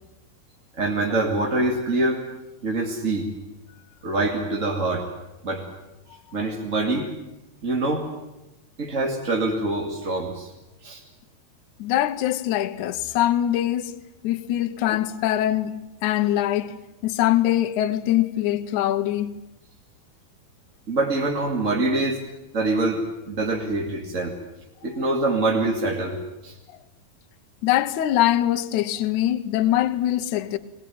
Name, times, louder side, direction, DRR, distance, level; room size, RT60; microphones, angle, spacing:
voice 1, 0.8-2.2 2.6-3.3 4.0-5.1 5.4-5.6 6.3-7.1 7.6-8.1 8.8-10.5 10.8-11.0 20.9-22.2 22.5-24.4 24.8-26.5, right 2 dB, 25° right, 2.0 m, -25 dB
voice 2, 11.8-14.0 14.2-19.4 27.6-30.6, left 13 dB, 70° left, 2.1 m, -23 dB
22.5 x 19.5 x 9.3 m
omnidirectional pair, 4.3 m